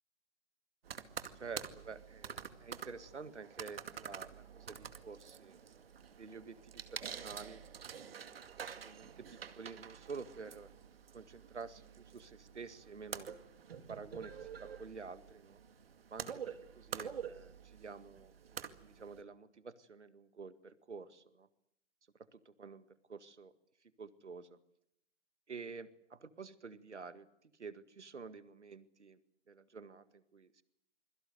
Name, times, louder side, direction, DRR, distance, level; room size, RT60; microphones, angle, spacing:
sound 1, 0.8-19.2, right 7 dB, 55° right, 2.3 m, -48 dB
voice 1, 1.4-5.6 6.2-7.6 8.6-10.7 11.1-13.3 13.9-15.6 16.1-18.3 18.8-21.5 22.5-23.5 24.0-24.6 25.5-27.3 27.6-29.2 29.5-30.6, right 5 dB, 75° right, 13 dB, 2.0 m, -49 dB
28.5 x 22.5 x 8.0 m, 0.76 s
figure-of-eight pair, 130°, 35 cm